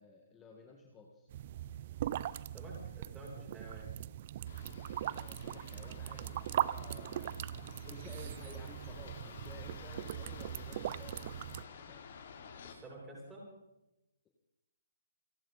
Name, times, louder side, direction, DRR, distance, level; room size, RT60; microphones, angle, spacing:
voice 1, 0.0-1.3 5.1-12.0, left 3 dB, 15° left, 1 dB, 1.9 m, -55 dB
sound 1, 1.3-11.6, right 11 dB, 45° right, 0.6 m, -40 dB
voice 2, 2.3-3.9 12.6-13.5, right 1 dB, 10° right, -3 dB, 8.0 m, -50 dB
sound 2, 4.5-12.8, left 6 dB, 55° left, 3.5 m, -52 dB
29.5 x 11.5 x 4.2 m, 0.92 s
hypercardioid pair, 150°, 0 cm